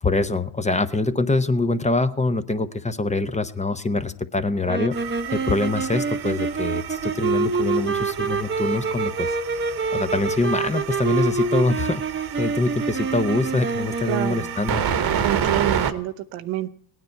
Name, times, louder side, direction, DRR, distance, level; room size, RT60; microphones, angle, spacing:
voice 1, 0.0-4.9 5.3-9.4 9.9-12.0 12.4-14.8, left 2 dB, 15° left, 10 dB, 0.8 m, -24 dB
sound 1, 4.6-14.6, right 4 dB, 25° right, 1.0 m, -26 dB
sound 2, 4.9-15.9, right 8 dB, 50° right, 1.2 m, -30 dB
voice 2, 14.1-14.5 15.2-16.7, right 13 dB, 75° right, 9 dB, 0.9 m, -27 dB
17.5 x 9.6 x 4.5 m, 0.66 s
supercardioid pair, 80°, 47 cm